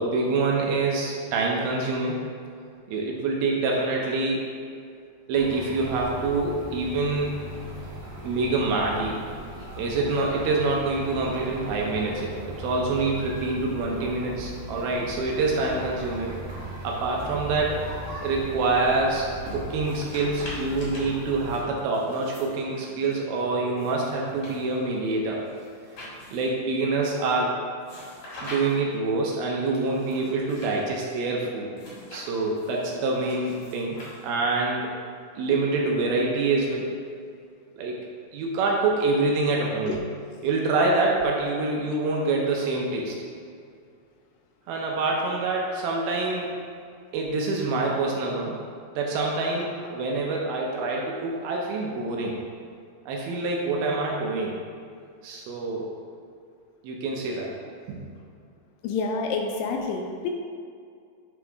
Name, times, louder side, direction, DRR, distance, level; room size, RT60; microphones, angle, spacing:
voice 1, 0.0-2.2 2.9-4.5 5.3-7.4 8.2-9.2 9.8-16.4 16.8-17.8 18.2-19.3 19.5-25.4 26.3-27.5 28.4-31.7 32.1-34.0 34.2-34.9 35.4-36.9 37.8-38.0 38.3-43.2 44.7-46.5 47.1-48.6 48.9-52.4 53.1-54.5 55.2-55.9 56.8-57.5 57.9-58.0, right 3 dB, 75° right, -2 dB, 2.4 m, -26 dB
sound 1, 5.3-21.6, right 1 dB, 60° right, 2.6 m, -38 dB
sound 2, 19.7-23.2 23.8-26.6 27.8-29.0 29.7-30.8 31.7-34.6, left 1 dB, 55° left, 1.8 m, -44 dB
voice 2, 58.8-60.3, left 4 dB, 80° left, 2 dB, 2.4 m, -28 dB
9.1 x 3.6 x 3.4 m, 2.3 s
omnidirectional pair, 4.7 m